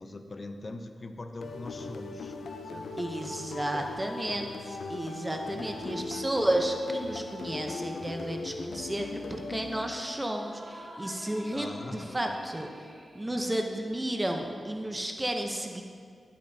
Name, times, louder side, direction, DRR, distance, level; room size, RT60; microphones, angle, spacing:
voice 1, 0.0-2.3 2.6-2.9 5.3-5.9 11.5-12.4 13.3-13.5, left 2 dB, 45° left, 7 dB, 0.6 m, -42 dB
sound 1, 1.4-10.3, left 3 dB, 90° left, 0.5 m, -39 dB
voice 2, 3.0-12.9 13.1-15.8, right 1 dB, 15° right, 3 dB, 0.6 m, -32 dB
sound 2, 10.2-14.9, right 1 dB, 80° right, 2.4 m, -49 dB
10.5 x 8.5 x 2.7 m, 2.2 s
wide cardioid pair, 75°, 0 cm